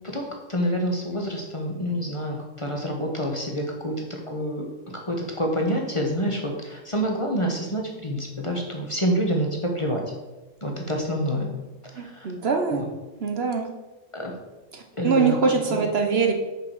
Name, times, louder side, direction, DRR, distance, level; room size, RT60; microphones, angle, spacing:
voice 1, 0.0-10.0 10.6-11.5 11.8-12.3 12.7-12.8 14.1-14.4 15.0-15.8, equal, 25° left, 1 dB, 1.0 m, -27 dB
voice 2, 12.0-12.8 13.2-13.7 14.7-16.3, right 5 dB, 55° right, 3 dB, 1.1 m, -23 dB
6.4 x 5.3 x 6.5 m, 1.1 s
omnidirectional pair, 1.4 m